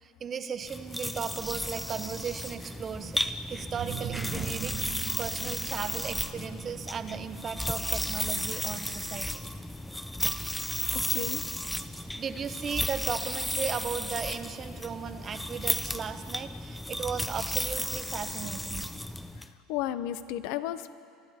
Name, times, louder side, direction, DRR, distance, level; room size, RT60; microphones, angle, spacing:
voice 1, 0.0-3.2 3.5-9.4 12.2-18.9, right 6 dB, 35° right, 10 dB, 0.9 m, -36 dB
sound 1, 0.6-19.5, left 1 dB, 5° left, 0.6 m, -34 dB
sound 2, 3.7-9.2, right 10 dB, 60° right, 0.7 m, -42 dB
voice 2, 10.9-11.4 19.7-20.9, left 12 dB, 75° left, 13 dB, 0.7 m, -33 dB
24.0 x 12.0 x 4.3 m, 2.3 s
supercardioid pair, 95°, 0 cm